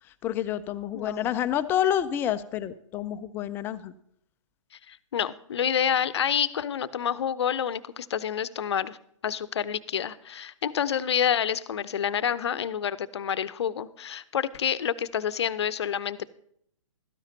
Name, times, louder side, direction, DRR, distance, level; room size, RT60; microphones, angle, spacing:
voice 1, 0.2-3.9, left 10 dB, 10° left, 12 dB, 0.4 m, -28 dB
voice 2, 0.9-1.3 4.9-9.0 9.2-16.3, left 8 dB, 55° left, 17 dB, 0.7 m, -28 dB
15.5 x 13.0 x 2.8 m, 0.70 s
figure-of-eight pair, 130°, 17 cm